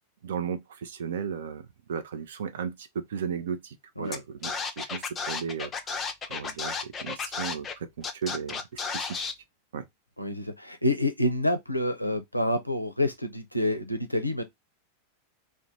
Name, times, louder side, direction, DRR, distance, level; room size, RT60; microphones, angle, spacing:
voice 1, 0.2-5.7 6.3-9.3 9.7-9.8, right 7 dB, 60° right, 0.4 m, -35 dB
Scratching (performance technique), 4.1-4.2 4.4-7.7 8.0-9.3, left 5 dB, 20° left, 0.4 m, -33 dB
voice 2, 10.2-14.4, left 1 dB, 90° left, 0.4 m, -28 dB
2.4 x 2.2 x 2.7 m
figure-of-eight pair, 90°, 0 cm